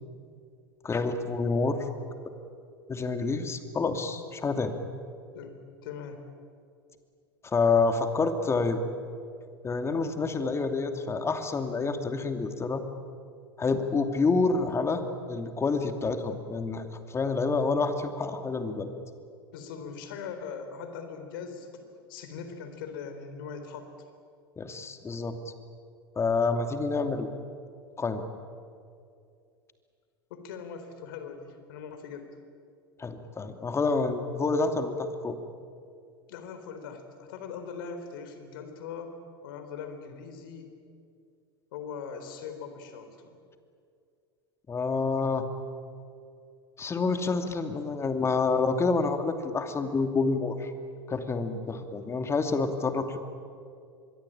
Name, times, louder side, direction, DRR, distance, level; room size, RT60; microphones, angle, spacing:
voice 1, 0.8-1.9 2.9-4.7 7.4-8.8 9.6-12.8 13.6-16.9 17.1-18.9 24.6-25.4 26.2-27.3 28.0-28.2 33.0-35.4 44.7-45.5 46.8-50.7 51.1-53.2, left 4 dB, 20° left, 7 dB, 2.7 m, -28 dB
voice 2, 5.3-6.2 19.5-23.9 30.3-32.3 36.3-39.1 39.4-40.7 41.7-43.4, left 6 dB, 65° left, 8 dB, 4.0 m, -41 dB
26.0 x 22.0 x 8.9 m, 2.3 s
figure-of-eight pair, 85°, 13 cm